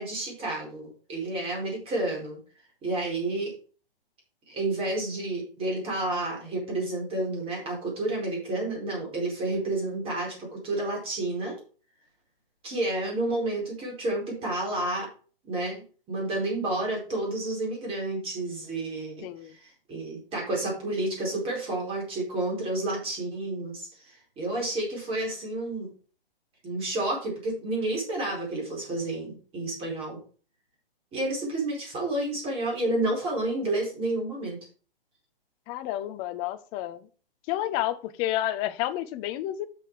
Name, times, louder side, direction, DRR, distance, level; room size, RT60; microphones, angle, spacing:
voice 1, 0.0-2.4 2.8-3.5 4.5-11.6 12.6-15.1 15.4-25.9 26.6-30.2 31.1-34.6, right 2 dB, 20° right, -2 dB, 4.4 m, -30 dB
voice 2, 19.2-19.5 35.7-37.1 37.5-39.7, left 13 dB, 15° left, 12 dB, 0.5 m, -30 dB
7.6 x 6.8 x 4.9 m, 0.39 s
hypercardioid pair, 140°, 29 cm